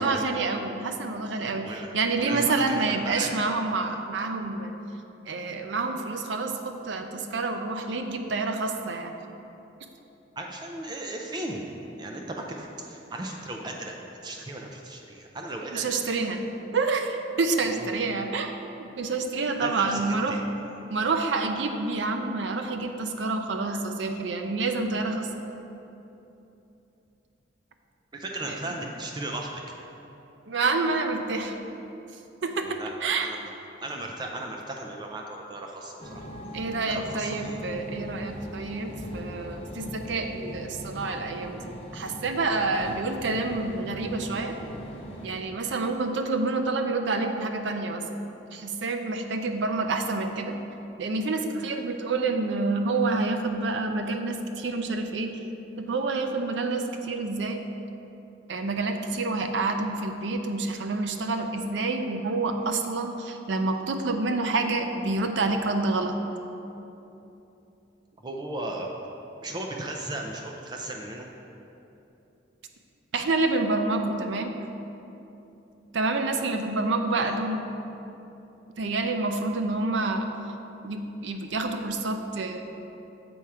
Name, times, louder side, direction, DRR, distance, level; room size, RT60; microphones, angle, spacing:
voice 1, 0.0-4.8 5.3-9.1 15.7-16.4 16.7-20.4 20.9-25.3 28.5-28.6 30.5-31.6 32.4-33.4 36.5-44.6 45.2-48.2 48.5-50.6 51.0-55.4 55.8-57.6 58.5-66.1 73.1-74.5 75.9-77.7 78.8-80.3 80.8-82.6, right 3 dB, 75° right, 6 dB, 0.5 m, -28 dB
voice 2, 1.6-3.4 10.4-11.6 12.0-14.0 14.2-15.9 17.6-17.9 19.6-20.4 28.1-29.5 32.6-32.9 33.2-33.4 33.8-36.2 36.9-37.6 68.2-68.9 69.4-71.3 77.2-77.3, right 1 dB, 25° right, 1 dB, 0.4 m, -36 dB
sound 1, 36.0-45.4, equal, 30° left, 0.6 m, -40 dB
7.1 x 4.4 x 4.8 m, 3.0 s
head